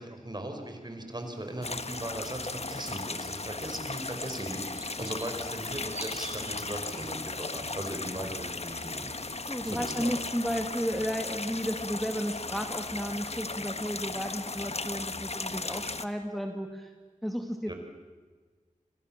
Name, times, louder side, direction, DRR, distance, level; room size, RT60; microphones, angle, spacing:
voice 1, 0.0-9.1 9.6-10.2 17.6-17.7, right 1 dB, 30° right, 4 dB, 5.1 m, -38 dB
sound 1, 1.1-12.6, right 2 dB, 55° right, 5.9 m, -50 dB
sound 2, 1.6-16.1, left 3 dB, 50° left, 1.2 m, -36 dB
voice 2, 9.3-16.9 17.2-17.7, equal, ahead, 4 dB, 2.0 m, -33 dB
30.0 x 24.5 x 7.5 m, 1.4 s
wide cardioid pair, 55°, 14 cm